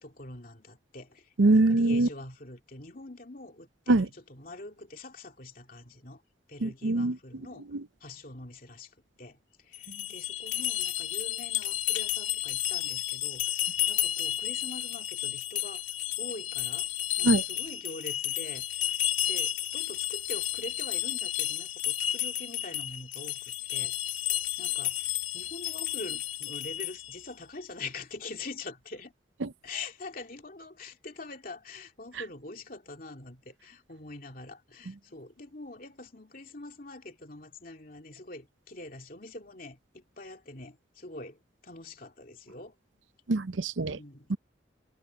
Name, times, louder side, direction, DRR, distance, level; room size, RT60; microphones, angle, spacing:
voice 1, 0.0-6.2 6.5-7.7 8.0-15.9 16.2-24.2 24.6-29.1 29.6-42.8 43.8-44.4, left 2 dB, 50° left, 2.7 m, -44 dB
voice 2, 1.4-2.1 3.9-4.1 6.6-7.2 7.7-7.9 17.2-17.4 29.4-29.5 32.1-32.2 43.3-44.0 44.3-44.4, right 2 dB, 90° right, 0.7 m, -23 dB
sound 1, 9.7-27.2, left 13 dB, 85° left, 2.5 m, -32 dB
head